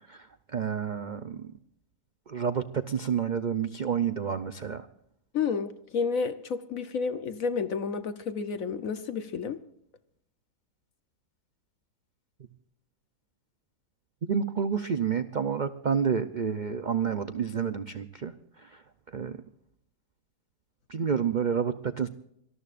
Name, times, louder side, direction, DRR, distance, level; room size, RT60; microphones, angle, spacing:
voice 1, 0.1-1.5 2.3-4.9 14.2-18.8 19.1-19.4 20.9-22.1, right 7 dB, 75° right, 0.4 m, -29 dB
voice 2, 5.3-9.6, left 5 dB, 60° left, 1.2 m, -30 dB
25.0 x 19.5 x 2.5 m
omnidirectional pair, 1.7 m